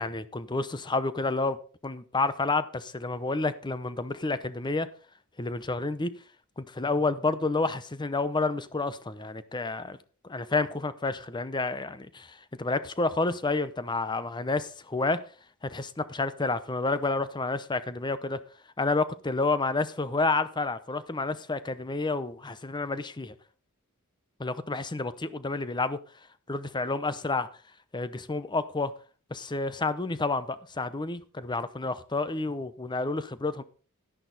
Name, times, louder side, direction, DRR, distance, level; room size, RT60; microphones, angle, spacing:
voice 1, 0.0-1.6 1.8-4.9 5.4-6.1 6.6-10.0 10.2-15.2 15.6-18.4 18.8-23.3 24.4-26.0 26.5-27.5 27.9-28.9 29.3-33.6, left 3 dB, 20° left, 0.7 m, -29 dB
11.5 x 10.5 x 4.0 m
head